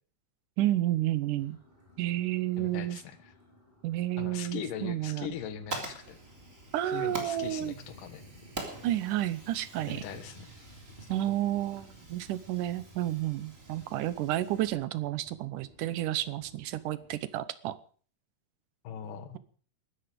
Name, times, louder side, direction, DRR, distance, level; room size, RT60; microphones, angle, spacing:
voice 1, 0.6-1.6 2.0-3.0 3.8-5.3 6.7-7.7 8.8-10.0 11.1-17.8, right 14 dB, 80° right, 16 dB, 2.5 m, -31 dB
sound 1, 1.4-17.3, equal, 15° left, 4.6 m, -56 dB
voice 2, 2.6-3.3 4.2-6.2 6.8-8.2 9.9-10.5 18.8-19.4, left 8 dB, 85° left, 11 dB, 3.1 m, -40 dB
Fire, 5.3-14.7, right 2 dB, 25° right, 3.5 m, -45 dB
21.5 x 13.0 x 5.1 m, 0.43 s
omnidirectional pair, 3.7 m